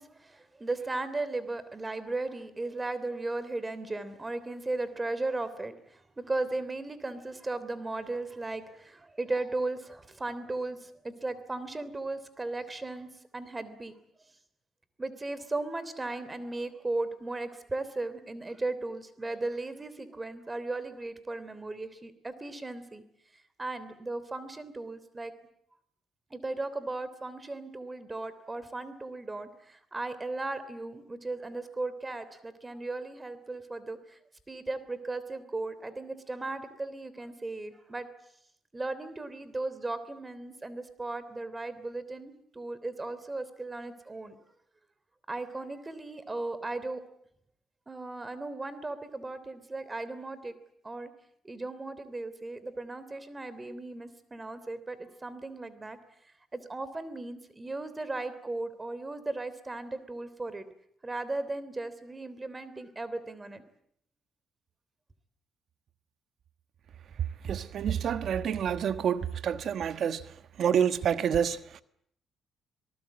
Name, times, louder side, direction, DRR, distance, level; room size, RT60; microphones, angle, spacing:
voice 1, 0.0-5.7 6.2-13.1 13.3-13.9 15.0-23.0 23.6-25.3 26.3-34.0 34.5-38.1 38.7-44.4 45.3-47.0 47.9-50.5 50.8-51.1 51.4-56.0 56.5-60.6 61.0-63.6, right 2 dB, 20° right, 3.2 m, -36 dB
voice 2, 67.4-70.2 70.6-71.8, right 8 dB, 65° right, 1.3 m, -28 dB
27.0 x 19.0 x 8.6 m
cardioid pair, 90°, 0 cm